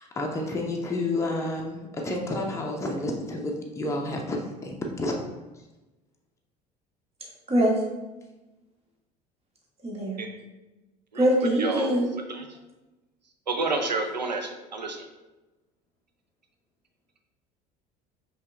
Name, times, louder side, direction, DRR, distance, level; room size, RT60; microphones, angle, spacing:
voice 1, 0.0-5.1, left 2 dB, 15° left, 0 dB, 0.7 m, -30 dB
voice 2, 7.5-7.8 9.8-10.2 11.1-12.1, equal, 30° right, -3 dB, 1.5 m, -23 dB
voice 3, 11.6-11.9 12.3-12.4 13.5-15.0, right 3 dB, 90° right, 4 dB, 0.5 m, -29 dB
5.5 x 2.4 x 3.3 m, 1.1 s
figure-of-eight pair, 65°, 21 cm